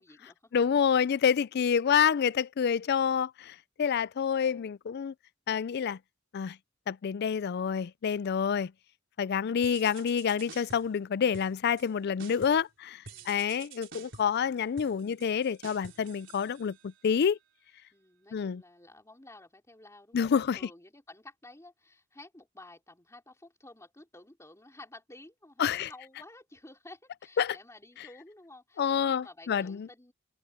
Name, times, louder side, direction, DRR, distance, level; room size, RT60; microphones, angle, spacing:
voice 1, 0.0-0.5 4.3-4.7 13.0-13.4 17.9-30.1, left 2 dB, 15° left, 3.4 m, -53 dB
voice 2, 0.5-5.1 5.5-6.0 6.3-6.6 6.9-8.7 9.2-17.4 18.3-18.6 20.1-20.6 25.6-25.9 27.4-27.6 28.8-29.9, left 7 dB, 55° left, 0.4 m, -28 dB
sound 1, 9.6-11.0 11.3-11.9 12.2-12.7 13.1-17.1, right 5 dB, 65° right, 4.6 m, -50 dB
head